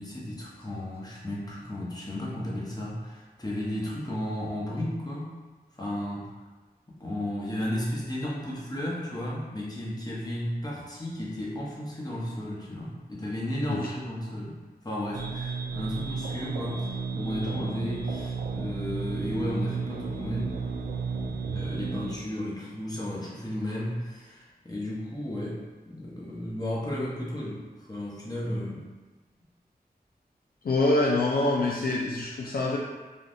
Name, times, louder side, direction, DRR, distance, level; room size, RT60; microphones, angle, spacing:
voice 1, 0.0-5.3 5.7-6.3 6.9-14.6 14.8-20.6 21.5-28.9, left 1 dB, 25° left, -5 dB, 0.8 m, -34 dB
sound 1, 15.1-22.1, right 5 dB, 65° right, 0.4 m, -33 dB
voice 2, 30.6-32.8, left 2 dB, 65° left, -3 dB, 0.4 m, -25 dB
3.5 x 2.3 x 2.6 m, 1.3 s
wide cardioid pair, 50°, 17 cm